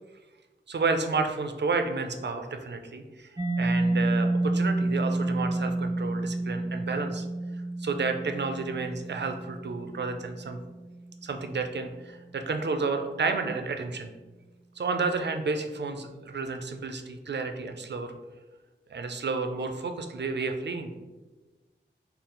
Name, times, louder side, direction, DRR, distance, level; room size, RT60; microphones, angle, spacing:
voice 1, 0.7-7.3 7.8-10.6 11.2-14.1 14.8-18.2 18.9-20.9, right 4 dB, 60° right, 6 dB, 0.5 m, -31 dB
Mallet percussion, 3.4-10.9, right 2 dB, 15° right, 0.8 m, -29 dB
3.9 x 2.0 x 4.2 m, 1.2 s
wide cardioid pair, 45°, 20 cm